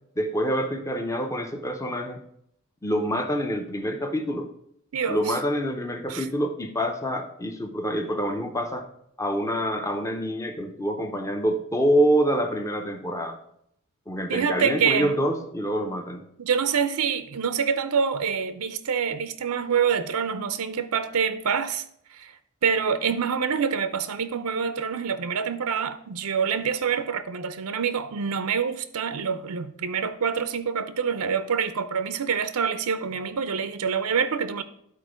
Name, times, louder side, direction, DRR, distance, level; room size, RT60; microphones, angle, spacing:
voice 1, 0.2-2.2 2.8-4.5 5.1-8.9 9.2-13.4 14.1-16.2, equal, 15° left, 0.6 m, -26 dB
voice 2, 4.9-5.3 6.1-6.3 14.3-15.1 16.4-21.8 22.1-34.6, right 6 dB, 85° right, 0.5 m, -26 dB
11.5 x 4.3 x 5.0 m
head